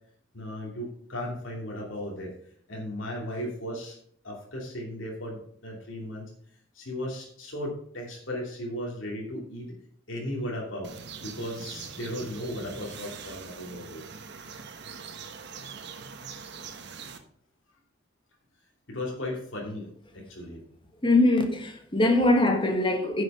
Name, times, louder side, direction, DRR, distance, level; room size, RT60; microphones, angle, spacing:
voice 1, 0.3-2.3 2.7-4.0 4.2-6.3 6.7-9.7 10.1-10.9 11.2-14.0 14.4-14.5 18.9-20.6, left 1 dB, 70° left, 2.8 m, -36 dB
sound 1, 10.8-17.2, right 5 dB, 60° right, 1.1 m, -42 dB
voice 2, 21.0-23.2, left 2 dB, 25° left, 1.5 m, -22 dB
9.9 x 6.5 x 5.5 m
head